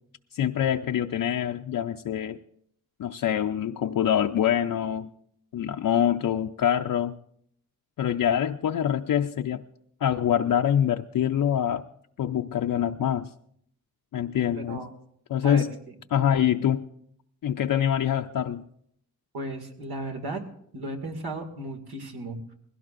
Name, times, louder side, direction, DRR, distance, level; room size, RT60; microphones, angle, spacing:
voice 1, 0.3-2.4 3.0-5.1 5.5-7.1 8.0-9.6 10.0-11.8 12.2-13.3 14.1-14.8 15.3-15.7 16.1-16.8 17.4-18.6, left 9 dB, 65° left, 5 dB, 0.5 m, -25 dB
voice 2, 19.3-20.4 20.7-22.5, right 1 dB, 85° right, 3 dB, 2.1 m, -35 dB
20.5 x 16.5 x 2.5 m, 0.69 s
cardioid pair, 85°, 36 cm